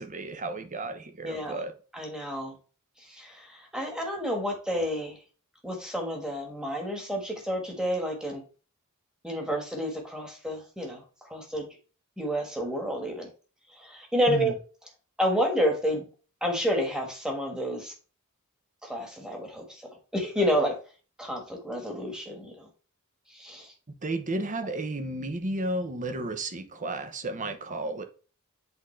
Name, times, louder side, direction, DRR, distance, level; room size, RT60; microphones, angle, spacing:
voice 1, 0.0-1.7 14.3-14.5 24.0-28.0, right 2 dB, 35° right, 0.8 m, -33 dB
voice 2, 1.2-1.6 1.9-2.5 3.1-5.2 5.6-8.4 9.2-11.7 12.2-13.3 13.7-14.5 15.2-16.0 16.4-17.9 18.8-19.8 20.1-20.8 21.2-22.7 23.3-23.7, equal, 5° right, 1.5 m, -30 dB
8.1 x 3.8 x 3.3 m
head